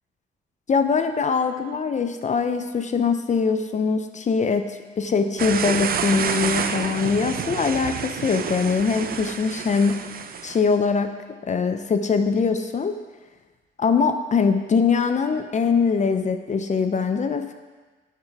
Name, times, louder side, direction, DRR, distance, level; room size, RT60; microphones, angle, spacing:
voice 1, 0.7-10.0 10.4-11.1 11.5-13.0 13.8-17.5, left 5 dB, 35° left, 8 dB, 0.6 m, -22 dB
sound 1, 5.4-10.6, right 7 dB, 50° right, 0.6 m, -28 dB
9.6 x 6.6 x 4.7 m, 1.3 s
cardioid pair, 90°, 20 cm